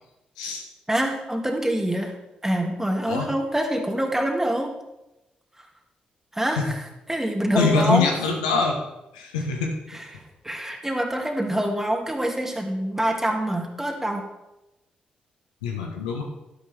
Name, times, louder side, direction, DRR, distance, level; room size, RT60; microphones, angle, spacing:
voice 1, 0.9-2.1 2.4-4.7 6.3-6.8 7.1-8.1 9.9-14.2, right 1 dB, 10° right, 2 dB, 2.4 m, -25 dB
voice 2, 7.5-8.8 9.1-9.8 15.6-16.2, left 4 dB, 85° left, 1 dB, 1.3 m, -24 dB
11.5 x 11.0 x 3.5 m, 0.95 s
hypercardioid pair, 40°, 4 cm